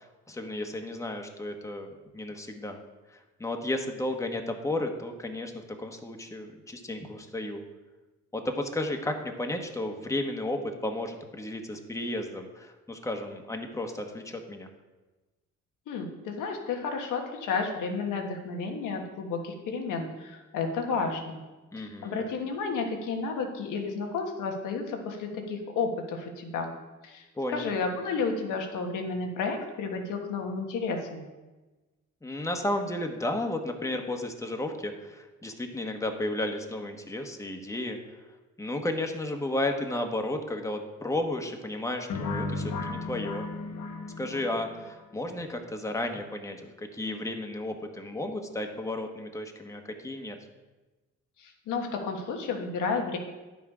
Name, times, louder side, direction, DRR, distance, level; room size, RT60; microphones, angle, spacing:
voice 1, 0.0-2.8 3.1-7.6 8.3-14.7 21.7-22.2 27.4-27.6 32.2-38.0 38.6-43.4 44.2-50.4, left 1 dB, 10° left, 4 dB, 1.2 m, -33 dB
voice 2, 15.9-21.4 21.8-26.7 27.0-27.2 27.5-31.2 51.4-53.2, left 4 dB, 85° left, 3 dB, 1.5 m, -32 dB
sound 1, 42.1-45.0, left 3 dB, 65° left, 1.2 m, -34 dB
10.5 x 5.9 x 4.9 m, 1.2 s
cardioid pair, 90°, 30 cm